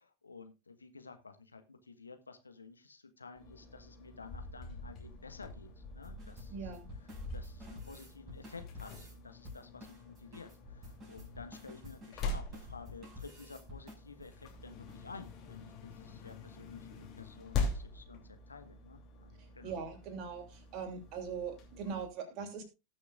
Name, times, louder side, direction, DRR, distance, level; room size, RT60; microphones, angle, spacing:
voice 1, 0.0-6.7 7.3-19.8, left 4 dB, 75° left, 7 dB, 1.3 m, -52 dB
sound 1, 3.3-22.1, left 3 dB, 35° left, 2.9 m, -44 dB
sound 2, 6.0-9.2 9.4-14.4 14.9-15.0 15.2-15.4 15.7-16.0 16.2-16.3 16.8-17.0 17.4-17.9, left 2 dB, 20° right, 5.5 m, -51 dB
voice 2, 6.5-6.9 19.4-22.6, right 6 dB, 40° right, 5 dB, 2.7 m, -41 dB
19.0 x 6.6 x 2.5 m, 0.27 s
figure-of-eight pair, 90°, 0 cm